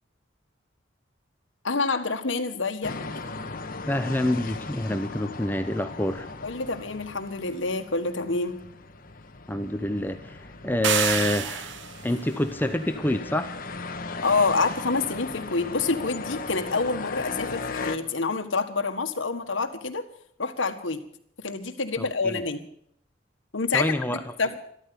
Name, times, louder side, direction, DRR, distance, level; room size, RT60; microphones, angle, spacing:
voice 1, 1.6-2.9 6.4-8.6 14.2-20.0 20.4-21.0 21.4-22.6 23.5-24.6, left 4 dB, 85° left, 8 dB, 1.5 m, -27 dB
sound 1, 2.8-18.0, left 3 dB, 50° left, 1.3 m, -37 dB
voice 2, 3.9-6.3 9.5-13.5 22.0-22.4 23.7-24.3, left 1 dB, 10° left, 8 dB, 0.8 m, -27 dB
sound 2, 10.8-12.1, right 9 dB, 70° right, 0.8 m, -27 dB
13.0 x 13.0 x 7.0 m, 0.67 s
head